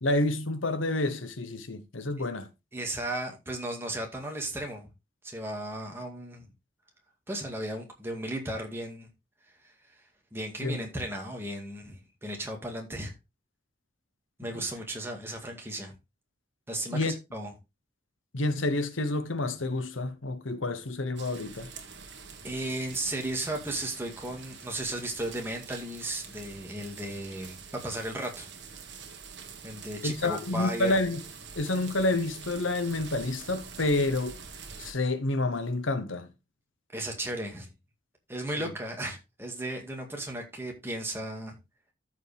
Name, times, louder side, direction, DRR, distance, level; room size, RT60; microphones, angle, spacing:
voice 1, 0.0-2.5 10.6-10.8 14.5-14.6 16.9-17.1 18.3-21.7 30.0-31.2 31.5-34.4 34.8-36.3 38.6-38.7, left 2 dB, 85° left, 1.1 m, -29 dB
voice 2, 2.7-4.9 5.2-6.5 7.3-9.1 9.6-10.0 10.3-13.1 14.4-15.9 16.7-17.5 22.4-29.0 29.6-31.0 36.9-37.7 38.3-41.6, right 1 dB, 10° right, 2.1 m, -35 dB
sound 1, 21.2-34.9, right 5 dB, 60° right, 1.7 m, -46 dB
13.5 x 5.0 x 3.5 m
head